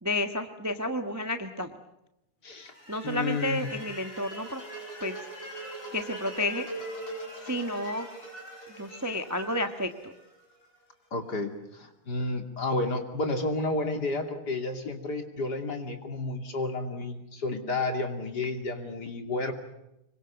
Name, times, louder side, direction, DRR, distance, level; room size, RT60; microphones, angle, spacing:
voice 1, 0.0-1.7 2.9-4.6 5.0-5.3 5.9-6.7 7.4-8.1 8.8-10.1, left 1 dB, 10° right, 7 dB, 1.0 m, -31 dB
voice 2, 2.4-2.7 3.0-3.6 11.1-19.5, left 2 dB, 50° left, 5 dB, 3.2 m, -31 dB
sound 1, 2.6-10.7, right 1 dB, 85° left, 8.2 m, -42 dB
26.0 x 23.5 x 7.1 m, 0.87 s
omnidirectional pair, 2.4 m